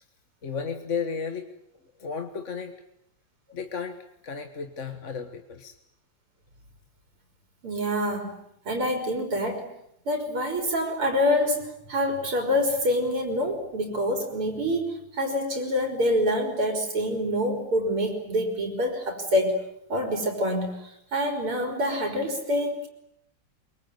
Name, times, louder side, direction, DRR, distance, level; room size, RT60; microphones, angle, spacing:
voice 1, 0.4-1.5 2.0-2.7 3.5-4.0 4.2-5.7, left 6 dB, 40° left, 6 dB, 1.6 m, -33 dB
voice 2, 7.6-8.3 8.6-9.7 10.1-19.6 19.9-22.9, left 1 dB, 80° right, 4 dB, 4.8 m, -26 dB
24.0 x 23.5 x 9.5 m, 0.76 s
omnidirectional pair, 2.4 m